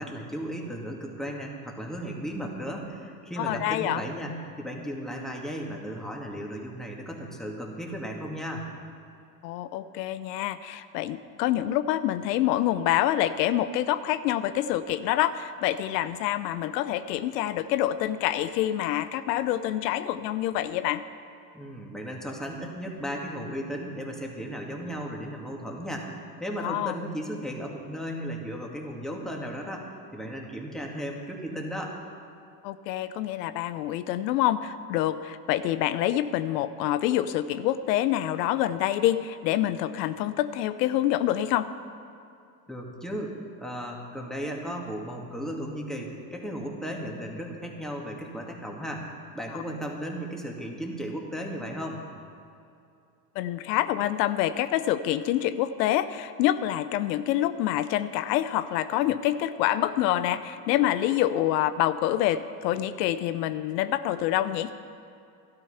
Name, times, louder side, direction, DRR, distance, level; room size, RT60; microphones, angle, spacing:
voice 1, 0.0-8.6 21.5-32.0 42.7-49.1 49.3-52.0, equal, ahead, -1 dB, 2.3 m, -35 dB
voice 2, 3.4-4.0 9.4-21.0 26.6-27.0 32.6-41.7 53.4-64.7, left 12 dB, 80° left, 13 dB, 0.6 m, -26 dB
12.5 x 12.5 x 5.7 m, 2.5 s
hypercardioid pair, 85°, 49 cm